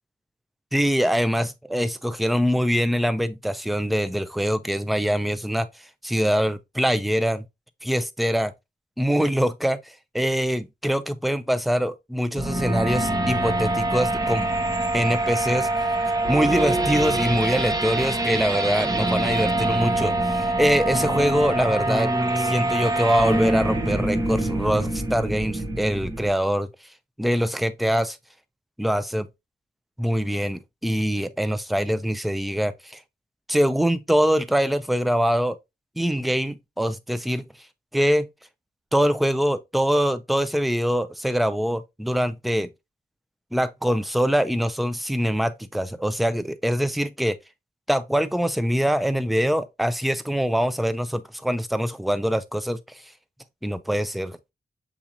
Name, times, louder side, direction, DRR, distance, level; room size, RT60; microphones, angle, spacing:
voice 1, 0.7-5.7 6.0-7.4 7.8-8.5 9.0-14.5 14.9-15.7 16.3-22.1 22.4-26.7 27.2-28.2 28.8-29.3 30.0-33.0 33.5-35.6 36.0-37.4 37.9-38.3 38.9-42.7 43.5-47.4 47.9-53.0 53.6-54.4, equal, ahead, 0.4 m, -23 dB
sound 1, 12.3-26.3, right 1 dB, 20° right, 0.8 m, -24 dB
7.2 x 2.8 x 2.5 m
cardioid pair, 80°, 17 cm